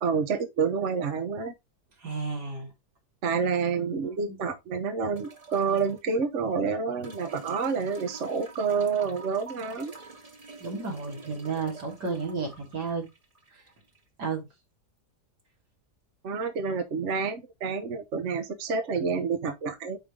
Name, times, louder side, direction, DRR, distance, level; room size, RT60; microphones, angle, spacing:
voice 1, 0.0-1.5 3.2-9.9 16.2-20.0, right 5 dB, 50° right, 1.3 m, -28 dB
voice 2, 2.0-2.7 3.8-4.0 10.6-13.0 13.5-13.6 14.2-14.4, right 4 dB, 80° right, 3.2 m, -32 dB
sound 1, 5.2-6.0 7.0-14.0 15.4-15.5, right 3 dB, 25° right, 1.5 m, -47 dB
9.8 x 3.4 x 3.8 m
omnidirectional pair, 1.8 m